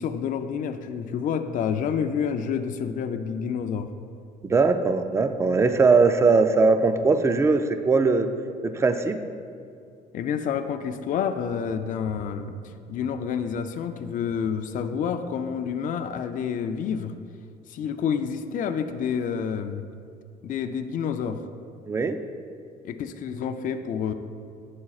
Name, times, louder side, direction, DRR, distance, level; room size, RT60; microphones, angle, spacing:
voice 1, 0.0-3.9 10.1-12.6 12.9-17.1 17.7-19.8 20.4-21.4 22.8-24.1, left 7 dB, 50° left, 8 dB, 0.4 m, -28 dB
voice 2, 4.4-8.3 8.6-9.2 21.9-22.2, right 4 dB, 15° right, 9 dB, 0.4 m, -20 dB
11.0 x 7.3 x 2.4 m, 2.3 s
cardioid pair, 110°, 17 cm